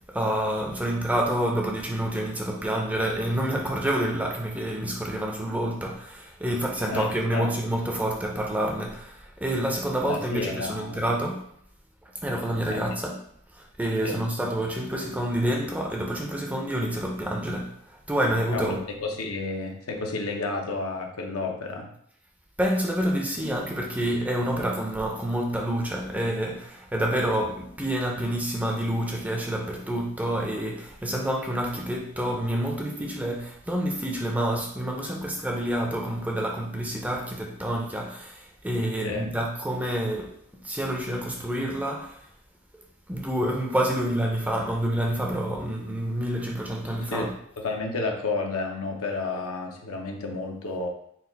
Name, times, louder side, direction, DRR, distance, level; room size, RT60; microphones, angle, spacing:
voice 1, 0.0-11.4 12.2-13.2 13.5-18.8 22.6-40.3 40.6-42.2 43.1-47.3, right 1 dB, 5° right, 0 dB, 0.5 m, -28 dB
voice 2, 6.9-7.6 10.0-11.1 12.7-12.8 14.0-14.2 18.5-21.9 39.0-39.2 47.1-47.3 47.6-50.9, left 3 dB, 80° left, 2 dB, 0.8 m, -31 dB
4.1 x 2.4 x 3.9 m, 0.69 s
head